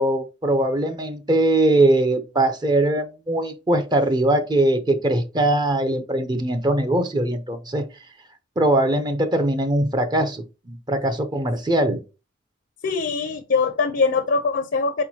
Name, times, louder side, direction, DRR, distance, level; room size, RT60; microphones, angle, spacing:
voice 1, 0.0-7.9 8.6-12.0, right 1 dB, 20° right, 0.5 m, -21 dB
voice 2, 12.8-15.0, left 4 dB, 60° left, 0.6 m, -22 dB
4.4 x 4.3 x 2.8 m
head